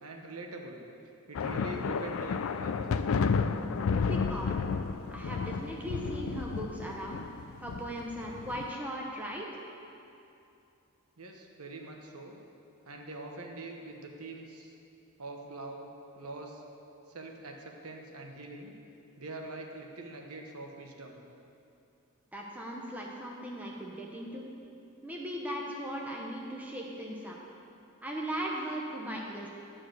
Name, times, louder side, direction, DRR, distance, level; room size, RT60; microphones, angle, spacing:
voice 1, 0.0-0.8 1.3-2.7 11.2-12.4 12.8-14.7 15.2-15.9 16.1-16.6 17.1-18.7 19.2-21.2, right 2 dB, 80° right, 1 dB, 1.1 m, -43 dB
sound 1, 1.3-8.7, left 5 dB, 65° left, 0.4 m, -32 dB
voice 2, 3.9-4.6 5.1-7.3 7.6-9.6 22.3-24.5 25.0-27.4 28.0-29.5, equal, 5° right, -2 dB, 0.8 m, -38 dB
11.0 x 4.7 x 7.8 m, 2.7 s
head